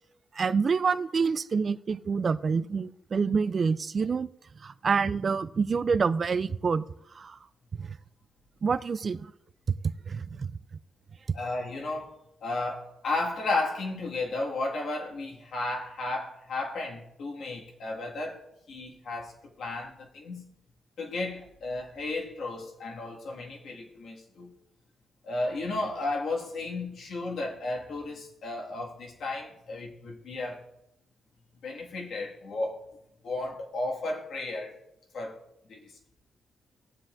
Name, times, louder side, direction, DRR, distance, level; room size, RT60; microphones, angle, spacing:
voice 1, 0.4-4.3 4.6-6.8 7.2-7.4 7.8-7.9 8.6-9.2 10.1-10.5, right 5 dB, 50° right, 0.4 m, -27 dB
voice 2, 11.3-12.1 12.4-18.4 18.7-20.5 21.0-24.5 25.2-30.6 31.6-32.8 33.2-34.7 35.1-35.4 35.7-35.9, left 2 dB, 70° left, 1.8 m, -33 dB
16.0 x 7.3 x 2.5 m
cardioid pair, 70°, 0 cm